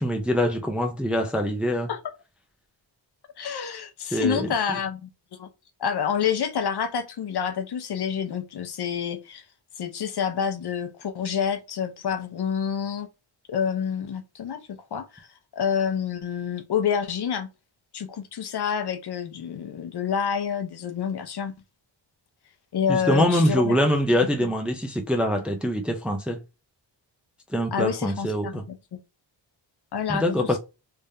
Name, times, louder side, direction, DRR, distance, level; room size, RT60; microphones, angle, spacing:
voice 1, 0.0-1.9 4.1-4.5 22.9-26.4 27.5-28.6 30.1-30.6, equal, ahead, 0.5 m, -24 dB
voice 2, 3.4-5.5 5.8-9.4 9.8-13.1 13.5-15.3 15.6-17.5 17.9-21.5 22.7-23.8 24.1-24.5 27.7-29.0 29.9-30.6, left 7 dB, 55° left, 0.8 m, -28 dB
3.5 x 3.4 x 2.6 m
wide cardioid pair, 160°, 47 cm